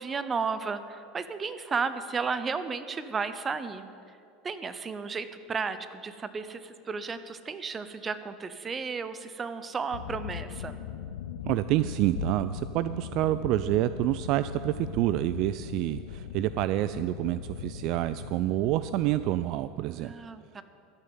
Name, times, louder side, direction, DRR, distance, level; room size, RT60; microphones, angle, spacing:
voice 1, 0.0-3.9 4.4-10.8 20.0-20.6, right 5 dB, 25° right, 12 dB, 0.9 m, -33 dB
sound 1, 9.9-19.5, left 8 dB, 75° left, 0.5 m, -39 dB
voice 2, 11.5-20.1, right 15 dB, 55° right, 13 dB, 0.3 m, -28 dB
14.0 x 6.7 x 9.3 m, 2.5 s
hypercardioid pair, 80°, 0 cm